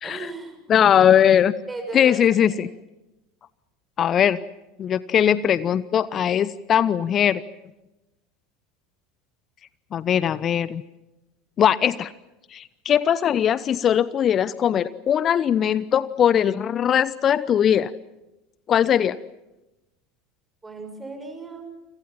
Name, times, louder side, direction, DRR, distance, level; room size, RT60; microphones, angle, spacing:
voice 1, 0.0-0.9 1.7-2.6 20.6-21.7, right 3 dB, 15° right, 6 dB, 7.0 m, -36 dB
voice 2, 0.7-1.5 1.9-2.7 4.0-4.4 4.8-7.4 9.9-10.8 11.6-12.1 12.5-17.9 18.7-19.2, left 9 dB, 35° left, 18 dB, 0.8 m, -20 dB
29.5 x 26.0 x 5.7 m, 0.97 s
figure-of-eight pair, 75°, 0 cm